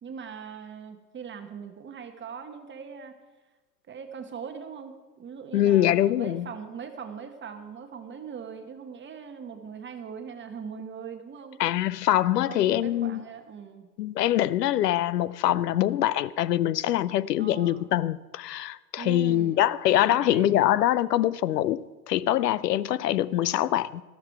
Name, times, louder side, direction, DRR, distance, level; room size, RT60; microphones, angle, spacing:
voice 1, 0.0-3.2 3.9-11.6 12.5-13.9 17.4-17.9 19.0-19.7 20.1-20.5, right 6 dB, 25° right, 1.1 m, -40 dB
voice 2, 5.5-6.5 11.6-13.2 14.0-24.0, left 13 dB, 80° left, 0.6 m, -24 dB
12.5 x 12.5 x 4.7 m
hypercardioid pair, 90°, 48 cm